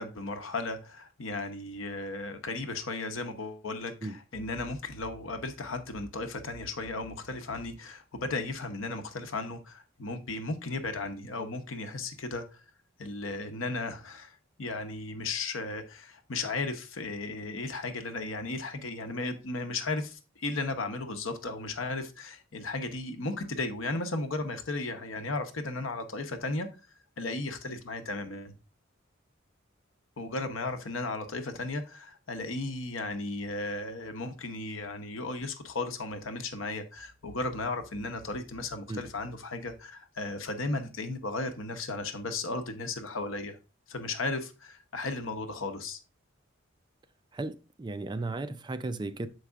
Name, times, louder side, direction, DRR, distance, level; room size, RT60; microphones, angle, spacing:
voice 1, 0.0-12.6 13.0-26.7 27.2-28.5 30.2-43.6 43.9-46.0, left 3 dB, 80° left, 0.9 m, -35 dB
voice 2, 47.3-49.3, right 2 dB, 20° right, 0.4 m, -35 dB
6.6 x 4.8 x 3.5 m
head